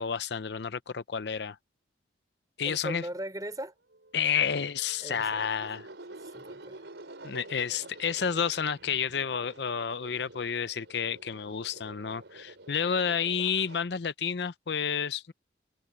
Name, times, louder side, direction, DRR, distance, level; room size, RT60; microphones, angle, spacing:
voice 1, 0.0-1.6 2.6-3.0 4.1-5.9 7.2-15.3, left 7 dB, 70° left, 0.6 m, -30 dB
voice 2, 2.6-3.7 5.0-5.7 6.2-6.8, right 1 dB, 20° right, 5.1 m, -39 dB
sound 1, 3.9-13.8, right 2 dB, 85° right, 4.6 m, -48 dB
head